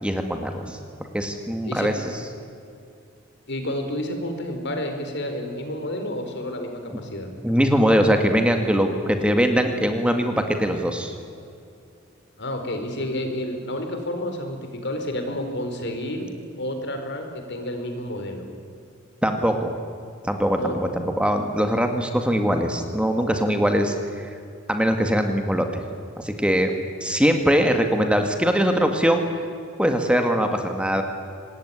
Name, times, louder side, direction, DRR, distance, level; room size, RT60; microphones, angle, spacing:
voice 1, 0.0-0.8 1.1-1.9 7.4-11.2 19.2-19.7 20.2-20.6 20.9-24.3 24.7-25.8 26.2-26.7 27.0-29.2 29.8-31.0, equal, 5° right, 5 dB, 2.0 m, -21 dB
voice 2, 3.5-7.3 12.4-14.6 14.8-16.3 16.6-18.5 20.5-20.8, left 1 dB, 60° left, 5 dB, 4.4 m, -30 dB
25.5 x 20.0 x 10.0 m, 2.4 s
head